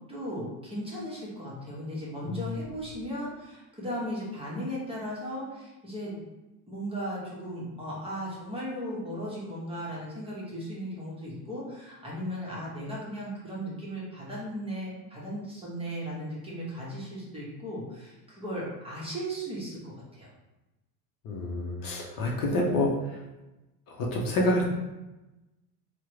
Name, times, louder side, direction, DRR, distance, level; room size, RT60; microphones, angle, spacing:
voice 1, 0.0-6.3 6.7-20.3, equal, 15° right, -6 dB, 0.8 m, -36 dB
voice 2, 21.2-22.9 24.0-24.6, left 1 dB, 45° left, -2 dB, 0.6 m, -27 dB
3.5 x 2.1 x 3.0 m, 1.0 s
cardioid pair, 135°, 46 cm